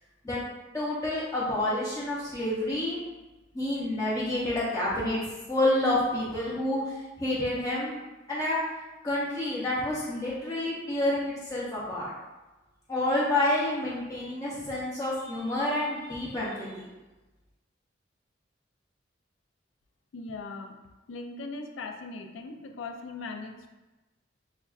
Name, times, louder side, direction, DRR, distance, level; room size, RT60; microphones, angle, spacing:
voice 1, 0.7-3.0 3.5-5.2 5.5-8.0 8.3-8.6 9.0-12.1 12.9-16.9, left 1 dB, 20° left, -7 dB, 0.5 m, -29 dB
voice 2, 20.1-20.8 21.1-23.7, left 3 dB, 80° left, 5 dB, 0.4 m, -39 dB
5.4 x 2.2 x 2.3 m, 1.1 s
head